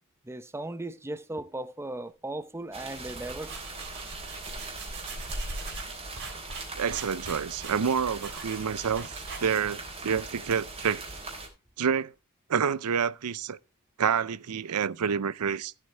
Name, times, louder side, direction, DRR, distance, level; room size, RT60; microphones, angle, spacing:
voice 1, 0.2-3.6, right 1 dB, 10° right, 0.7 m, -37 dB
sound 1, 2.7-11.5, right 3 dB, 30° right, 3.6 m, -41 dB
sound 2, 3.0-9.8, right 2 dB, 55° right, 4.9 m, -40 dB
voice 2, 6.7-11.0 11.8-12.1 12.5-13.6 14.0-15.7, right 7 dB, 90° right, 0.6 m, -28 dB
15.0 x 8.0 x 3.3 m
head